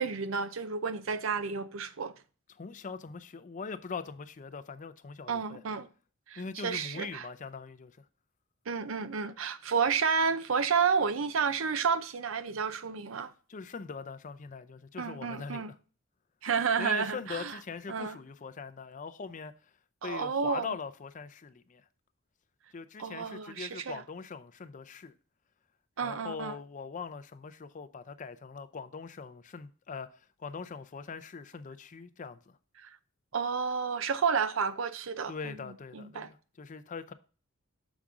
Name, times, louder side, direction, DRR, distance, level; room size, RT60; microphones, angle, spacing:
voice 1, 0.0-2.1 5.3-5.9 6.3-7.3 8.7-13.3 15.0-15.7 16.4-17.5 17.9-18.2 20.0-20.7 23.0-24.0 26.0-26.6 32.8-33.0 33.3-35.3 35.9-36.3, right 6 dB, 70° right, 0.6 m, -31 dB
voice 2, 2.5-5.6 6.4-8.0 13.5-15.8 16.8-19.7 20.0-21.8 22.7-25.1 26.0-32.6 35.3-37.1, left 5 dB, 40° left, 0.5 m, -42 dB
7.2 x 5.0 x 3.6 m
head